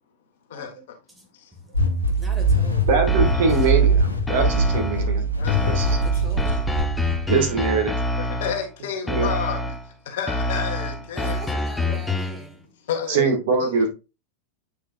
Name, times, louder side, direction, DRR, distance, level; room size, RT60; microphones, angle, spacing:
voice 1, 0.5-0.9 1.3-1.5 4.7-6.6 7.5-7.8 8.2-9.6 10.0-12.0 12.8-13.9, left 7 dB, 55° left, 1.6 m, -32 dB
sound 1, 1.7-7.6, right 2 dB, 85° left, 1.5 m, -22 dB
voice 2, 2.2-2.9 3.6-3.7 5.7-6.6 11.1-12.6, right 1 dB, 10° right, 2.2 m, -41 dB
voice 3, 2.9-5.2 5.6-6.0 7.3-8.0 9.1-9.3 13.1-13.9, right 5 dB, 55° right, 2.0 m, -22 dB
sound 2, 3.1-3.9 4.3-5.1 5.5-8.7 9.1-9.9 10.3-12.5, left 1 dB, 10° left, 0.8 m, -26 dB
8.5 x 4.8 x 2.5 m
figure-of-eight pair, 90°, 0 cm